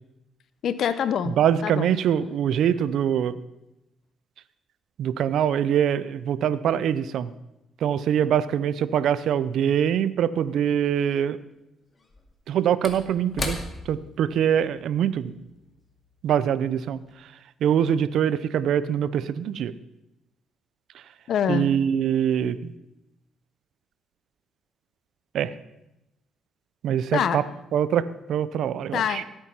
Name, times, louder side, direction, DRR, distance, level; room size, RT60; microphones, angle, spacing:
voice 1, 0.6-1.9 21.3-21.7 27.1-27.4 28.9-29.2, left 8 dB, 65° left, 14 dB, 0.8 m, -25 dB
voice 2, 1.4-3.3 5.0-7.3 7.8-11.4 12.5-13.6 13.9-15.3 16.2-17.0 17.6-19.7 21.5-22.7 25.3-25.5 26.8-27.4 27.7-29.2, right 9 dB, 75° right, 15 dB, 0.7 m, -23 dB
Slam / Wood, 10.4-10.5 11.9-16.6 17.0-17.1, left 3 dB, 35° left, 2.3 m, -38 dB
16.0 x 9.1 x 5.7 m, 0.92 s
cardioid pair, 90°, 0 cm